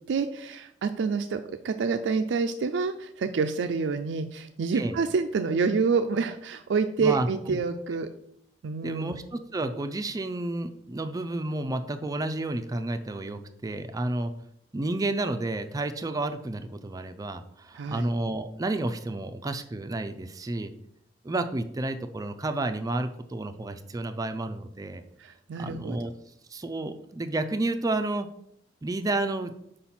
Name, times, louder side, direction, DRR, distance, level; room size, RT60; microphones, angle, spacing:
voice 1, 0.1-8.1 8.6-9.1 17.7-18.1 25.2-26.0, right 5 dB, 90° right, 7 dB, 0.4 m, -27 dB
voice 2, 7.0-7.6 8.8-14.3 14.7-20.7 21.2-25.0 25.6-26.1 26.5-28.3 28.8-29.5, right 2 dB, 20° right, 8 dB, 0.4 m, -31 dB
5.1 x 4.3 x 5.6 m, 0.75 s
head